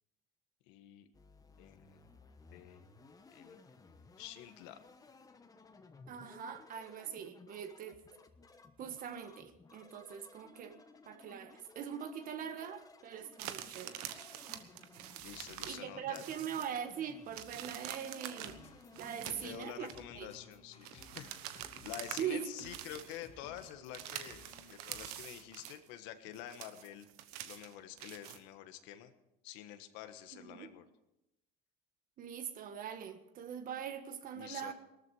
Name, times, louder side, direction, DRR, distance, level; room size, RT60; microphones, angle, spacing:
voice 1, 0.7-1.1 1.6-2.0 2.5-2.8 3.3-3.6 4.2-4.8 15.2-16.2 19.2-21.3 21.8-24.5 24.8-27.1 27.4-29.1 29.4-30.8 34.3-34.7, left 11 dB, 75° left, 1.4 m, -48 dB
sound 1, 1.1-19.6, left 3 dB, 20° left, 1.2 m, -59 dB
voice 2, 6.1-8.0 8.8-10.8 11.0-14.0 15.6-18.6 19.0-19.9 20.1-20.3 22.2-22.7 30.5-30.7 32.2-34.7, right 8 dB, 45° right, 1.5 m, -42 dB
sound 2, 13.4-15.9 16.1-16.9 17.3-20.0 20.8-22.3 22.6-23.2 23.6-25.9 26.3-28.4, right 12 dB, 85° right, 1.2 m, -46 dB
sound 3, 18.4-25.3, left 3 dB, 35° left, 2.7 m, -58 dB
18.5 x 13.5 x 4.8 m
supercardioid pair, 110°, 19 cm